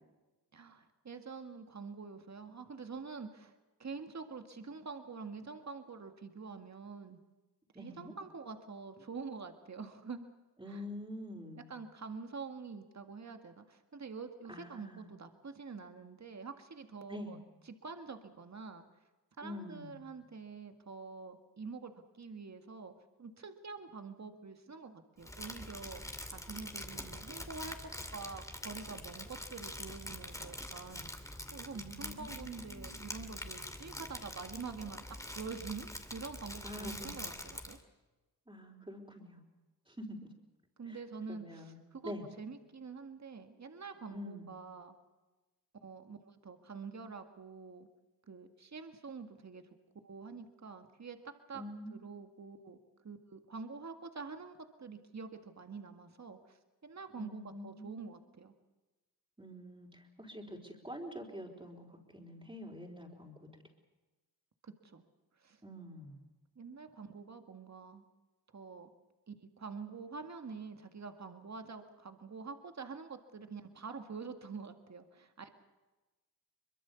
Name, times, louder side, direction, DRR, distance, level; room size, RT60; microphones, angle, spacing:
voice 1, 0.5-7.2 7.8-10.3 10.7-10.8 11.7-18.8 19.4-22.9 23.2-31.1 31.5-35.0 35.3-37.8 40.8-42.1 42.4-45.0 45.8-47.9 48.3-49.6 50.0-51.6 51.9-58.5 64.6-65.0 65.4-65.6 66.6-68.0 68.5-68.9 69.3-75.5, right 4 dB, 45° right, 7 dB, 2.0 m, -46 dB
voice 2, 7.7-8.1 10.6-11.6 14.5-15.1 17.1-17.4 19.4-20.0 31.7-33.0 36.6-37.2 38.5-39.4 39.9-40.2 40.9-41.0 41.3-41.8 42.0-42.2 44.1-44.5 51.5-52.0 57.2-58.2 59.4-63.5 65.6-66.2, left 1 dB, 15° right, -1 dB, 4.4 m, -46 dB
Crumpling crinkling, 25.2-37.8, left 1 dB, 10° left, 2.5 m, -45 dB
23.0 x 22.0 x 7.1 m, 1.1 s
cardioid pair, 55°, 39 cm